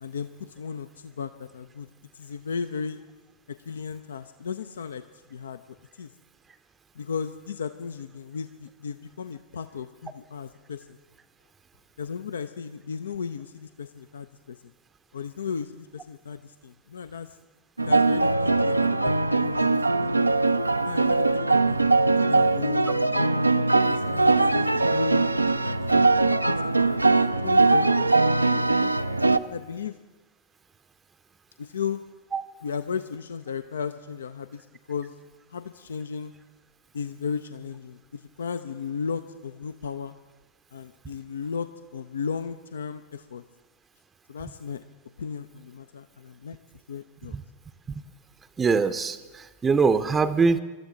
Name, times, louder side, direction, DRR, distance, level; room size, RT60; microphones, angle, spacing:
voice 1, 0.0-3.0 3.5-5.0 5.3-6.1 7.0-11.0 12.0-14.6 15.1-17.4 17.9-20.1 20.8-23.3 23.9-28.3 29.5-30.0 31.6-32.1 32.6-35.2 35.5-36.3 36.9-40.1 40.7-43.4 44.3-44.8 45.2-46.6 46.9-47.4, left 6 dB, 65° left, 12 dB, 0.4 m, -35 dB
sound 1, 17.8-29.4, right 3 dB, 85° right, 0.4 m, -21 dB
voice 2, 48.6-50.6, right 4 dB, 20° right, 11 dB, 0.6 m, -23 dB
23.5 x 13.0 x 3.8 m, 1.2 s
figure-of-eight pair, 90°, 0 cm